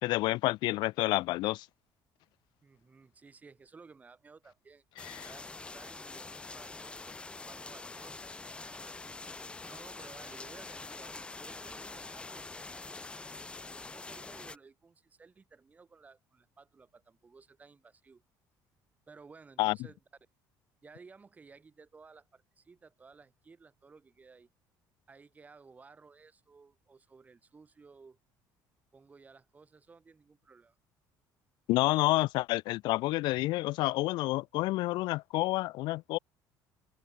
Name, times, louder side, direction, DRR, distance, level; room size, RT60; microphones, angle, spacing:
voice 1, 0.0-1.7 5.0-5.3 19.6-19.8 31.7-36.2, left 19 dB, 80° left, 1.5 m, -29 dB
voice 2, 2.6-4.8 5.2-8.3 8.6-9.0 9.6-18.2 19.1-20.0 20.8-24.5 25.1-28.2 28.9-30.8, right 4 dB, 20° right, 6.4 m, -56 dB
sound 1, 5.0-14.6, left 3 dB, 15° left, 1.1 m, -45 dB
cardioid pair, 145°, 8 cm